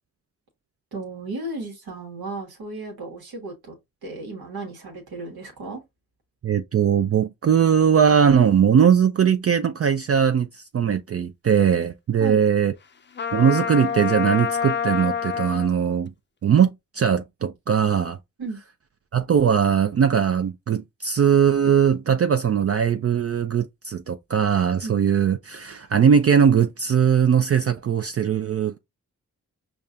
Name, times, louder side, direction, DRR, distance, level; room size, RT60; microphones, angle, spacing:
voice 1, 0.9-3.7 4.0-5.8 12.2-12.4 18.4-18.6 24.8-25.0, right 2 dB, 75° right, 1.2 m, -34 dB
voice 2, 6.4-12.7 13.3-16.1 16.4-18.2 19.1-28.8, right 7 dB, 40° right, 0.4 m, -20 dB
Trumpet, 13.2-15.7, left 7 dB, 30° left, 0.5 m, -26 dB
5.2 x 2.2 x 2.4 m
cardioid pair, 40°, 37 cm